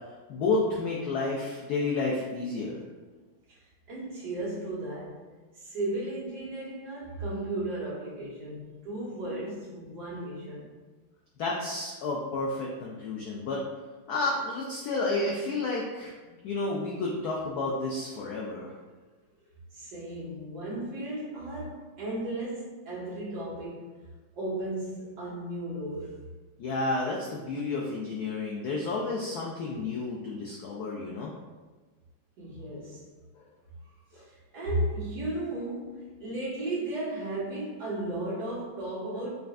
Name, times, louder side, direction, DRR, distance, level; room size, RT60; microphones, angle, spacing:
voice 1, 0.3-2.8 11.4-13.6 14.1-16.1 16.4-18.7 26.6-31.3 33.3-33.4 34.1-34.2, left 3 dB, 90° left, -3 dB, 0.8 m, -31 dB
voice 2, 3.9-5.3 5.5-10.7 19.7-23.9 24.4-26.3 32.4-33.1 34.1-39.3, right 1 dB, 55° right, -9 dB, 1.8 m, -35 dB
5.4 x 2.5 x 2.4 m, 1.3 s
omnidirectional pair, 2.2 m